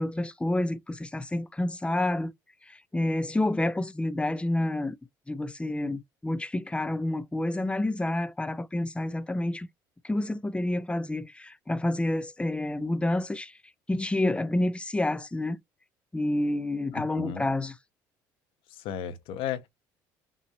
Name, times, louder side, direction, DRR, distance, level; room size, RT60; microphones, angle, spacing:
voice 1, 0.0-2.3 2.6-5.0 5.3-9.7 10.0-13.6 13.9-15.6 16.1-17.7, left 1 dB, 10° left, 1.0 m, -29 dB
voice 2, 16.9-17.5 18.7-19.7, left 9 dB, 70° left, 1.1 m, -34 dB
5.9 x 2.7 x 3.1 m
hypercardioid pair, 70°, 9 cm